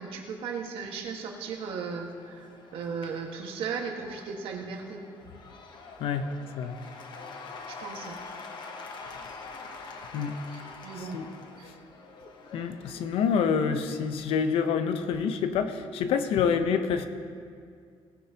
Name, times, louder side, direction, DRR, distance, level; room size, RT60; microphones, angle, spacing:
voice 1, 0.0-5.0 7.7-8.2 10.5-11.2 11.6-11.7, right 5 dB, 70° right, 1 dB, 1.7 m, -36 dB
Cheering / Applause / Crowd, 1.3-14.7, left 4 dB, 50° left, 1.1 m, -46 dB
voice 2, 6.0-6.8 9.8-9.9 10.1-10.4 11.0-11.3 12.5-17.1, left 6 dB, 75° left, 9 dB, 0.8 m, -27 dB
19.0 x 10.0 x 2.9 m, 2.2 s
cardioid pair, 145°, 10 cm